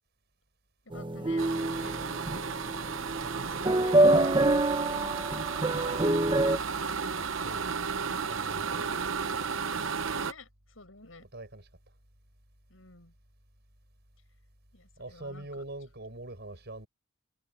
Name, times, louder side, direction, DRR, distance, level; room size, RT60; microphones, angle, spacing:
voice 1, 0.8-2.5 3.4-4.0 4.8-5.3 10.2-11.3 12.7-13.1 14.7-15.5, left 2 dB, 85° left, 7.9 m, -50 dB
sound 1, 0.9-6.6, right 2 dB, 25° right, 1.2 m, -26 dB
sound 2, 1.4-10.3, right 5 dB, 75° right, 0.9 m, -34 dB
voice 2, 3.2-4.1 5.7-6.5 7.1-7.7 8.2-9.8 11.3-11.7 15.0-16.9, right 2 dB, 60° right, 7.3 m, -44 dB
head